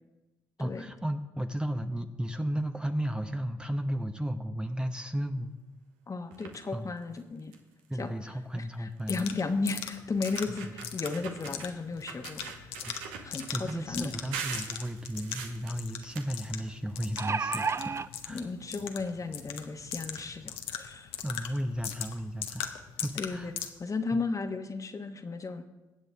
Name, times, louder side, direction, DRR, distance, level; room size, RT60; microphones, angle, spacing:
voice 1, 0.6-5.6 6.7-6.9 7.9-9.2 10.6-10.7 12.8-13.0 13.5-18.5 21.2-23.5, equal, 10° right, 7 dB, 0.9 m, -34 dB
voice 2, 6.1-7.5 7.9-8.1 8.5-12.7 13.2-14.1 18.3-21.1 23.2-25.6, left 4 dB, 35° left, 7 dB, 1.2 m, -34 dB
sound 1, 6.3-6.7 7.2-7.3 7.5-7.8 9.0-9.1 9.7-9.8 10.1-11.7 12.1-13.8 14.3-17.1 17.4-18.5 19.4-19.5 19.8-19.9 20.1-20.2, right 6 dB, 80° right, 1.1 m, -42 dB
sound 2, 9.1-23.7, left 9 dB, 75° left, 0.9 m, -41 dB
sound 3, 14.7-14.8 15.2-15.3 16.9-18.1 19.0-19.1 19.5-19.6, right 5 dB, 30° right, 0.4 m, -31 dB
20.5 x 8.0 x 3.5 m, 1.1 s
hypercardioid pair, 50°, 10 cm